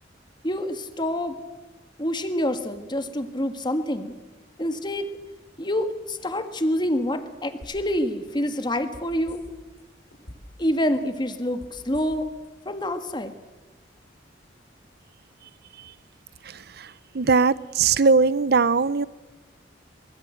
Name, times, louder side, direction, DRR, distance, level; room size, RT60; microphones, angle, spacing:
voice 1, 0.4-1.4 2.0-4.2 4.6-5.1 5.6-9.4 10.6-12.3 12.7-13.3, left 1 dB, 25° left, 1.8 m, -27 dB
sound 1, 7.6-8.0 8.3-9.8 10.1-10.6 10.9-12.5 12.8-12.9, left 1 dB, 65° left, 5.8 m, -45 dB
voice 2, 17.1-19.1, right 4 dB, 60° right, 0.7 m, -19 dB
23.0 x 21.5 x 7.9 m
head